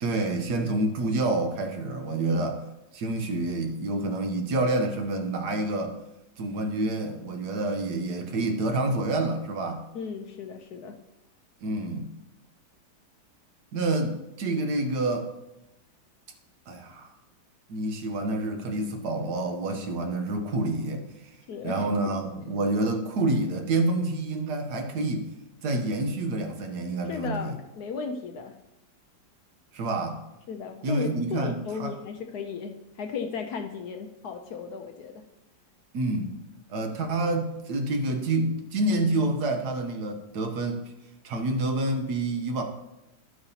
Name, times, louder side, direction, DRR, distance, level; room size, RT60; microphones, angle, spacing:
voice 1, 0.0-2.6 2.9-6.0 6.4-9.9 11.6-12.1 13.7-15.3 16.7-17.1 17.7-21.3 21.6-25.3 25.6-27.6 29.7-30.2 30.8-31.9 35.9-36.3 36.7-40.8 41.2-42.6, right 2 dB, 65° right, 4 dB, 1.4 m, -28 dB
voice 2, 9.9-11.0 21.5-21.9 27.1-28.6 30.5-35.2, left 5 dB, 70° left, 5 dB, 1.0 m, -35 dB
11.5 x 7.9 x 2.8 m, 0.95 s
omnidirectional pair, 2.0 m